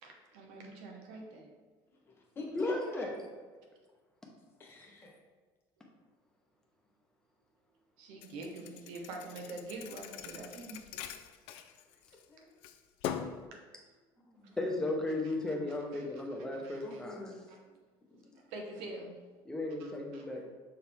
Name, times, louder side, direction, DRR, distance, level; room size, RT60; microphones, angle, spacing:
voice 1, 0.0-1.5 8.0-10.8 13.5-13.6 15.4-16.1 16.5-17.0 18.4-19.2 19.8-20.4, right 2 dB, 80° right, 1 dB, 1.1 m, -46 dB
voice 2, 1.9-3.1 3.5-3.7 4.6-5.1 12.3-12.6 14.1-14.9 16.8-17.4 18.1-18.6, left 2 dB, 25° left, -1 dB, 1.3 m, -47 dB
voice 3, 2.5-3.1 14.6-17.1 19.5-20.4, left 2 dB, 5° left, -1 dB, 0.9 m, -35 dB
Thump thud, 8.2-12.2 12.6-13.4, left 9 dB, 75° left, 0.5 m, -42 dB
6.5 x 4.6 x 3.5 m, 1.4 s
cardioid pair, 155°, 10 cm